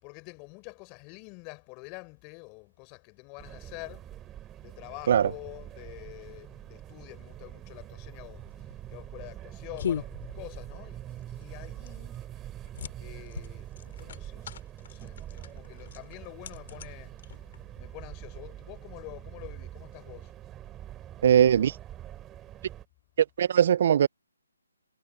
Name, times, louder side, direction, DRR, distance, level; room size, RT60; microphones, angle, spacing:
voice 1, 0.0-4.1 4.6-12.2 13.0-17.2 17.8-20.3, left 31 dB, 20° left, 4.6 m, -47 dB
sound 1, 3.4-22.8, right 12 dB, 15° right, 3.0 m, -44 dB
sound 2, 8.3-17.8, left 8 dB, 45° left, 2.2 m, -40 dB
voice 2, 21.2-21.7 23.4-24.1, right 9 dB, 45° right, 0.3 m, -20 dB
hypercardioid pair, 155°, 0 cm